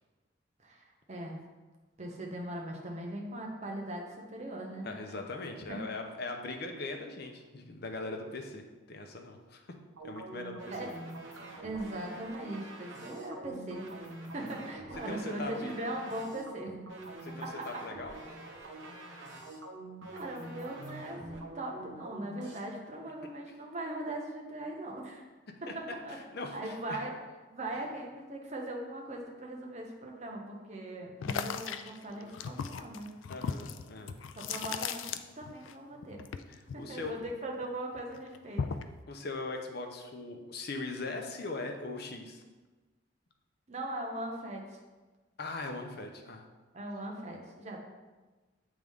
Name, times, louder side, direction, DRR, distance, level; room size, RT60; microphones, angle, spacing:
voice 1, 0.6-1.4 2.0-4.9 5.7-5.8 10.7-10.9 11.6-14.0 14.3-16.8 17.4-17.8 20.1-25.2 25.6-26.2 26.5-27.2 27.5-33.1 34.4-36.2 36.7-38.6 43.7-44.8 46.7-47.8, right 1 dB, 40° right, 0 dB, 0.9 m, -40 dB
voice 2, 4.8-9.8 10.0-10.6 11.5-11.6 14.5-14.7 15.1-15.7 17.2-18.1 25.5-25.7 26.3-27.0 33.3-34.2 36.5-37.2 39.1-42.4 45.4-46.4, left 3 dB, 55° left, 3 dB, 0.7 m, -40 dB
sound 1, 10.0-22.6, right 2 dB, 85° right, 1.0 m, -46 dB
sound 2, 31.2-35.7 36.0-37.6 38.0-39.0, left 6 dB, 90° left, 0.3 m, -37 dB
7.8 x 3.6 x 3.6 m, 1.3 s
head